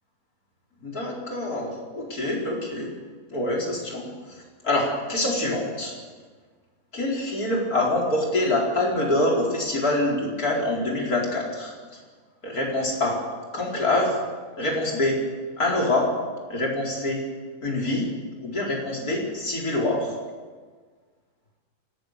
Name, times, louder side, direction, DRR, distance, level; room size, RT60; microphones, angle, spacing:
voice 1, 0.8-2.9 3.3-4.1 4.6-5.9 6.9-11.7 12.4-13.2 13.5-14.2 14.6-15.2 15.6-16.1 16.5-17.2 17.6-18.1 18.4-20.1, left 1 dB, 75° left, -2 dB, 5.1 m, -25 dB
25.5 x 18.5 x 6.7 m, 1.5 s
omnidirectional pair, 1.6 m